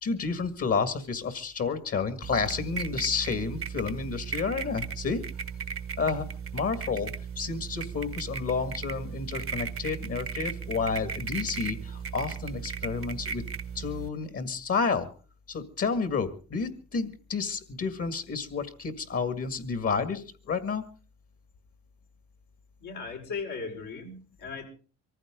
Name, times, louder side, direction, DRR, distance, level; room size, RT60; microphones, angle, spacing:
voice 1, 0.0-5.3 6.0-6.3 6.5-13.4 13.8-15.1 15.5-20.8, left 5 dB, 50° left, 12 dB, 2.1 m, -30 dB
sound 1, 2.2-14.1, right 6 dB, 45° right, 0.9 m, -36 dB
voice 2, 22.8-24.7, left 4 dB, 85° left, 0 dB, 5.4 m, -37 dB
23.5 x 15.0 x 3.8 m, 0.36 s
cardioid pair, 90°, 30 cm